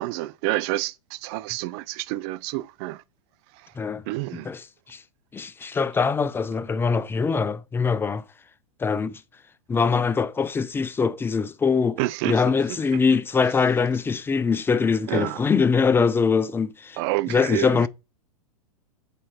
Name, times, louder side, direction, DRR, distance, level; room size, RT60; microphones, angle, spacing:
voice 1, 0.0-3.0 3.5-3.7 4.1-4.5 12.0-13.2 15.1-15.4 17.0-17.9, right 18 dB, 50° right, 0.4 m, -29 dB
voice 2, 5.3-8.2 8.8-9.2 9.7-12.0 12.2-17.0 17.3-17.9, left 5 dB, 10° left, 0.5 m, -23 dB
6.7 x 4.3 x 4.3 m
hypercardioid pair, 105°, 18 cm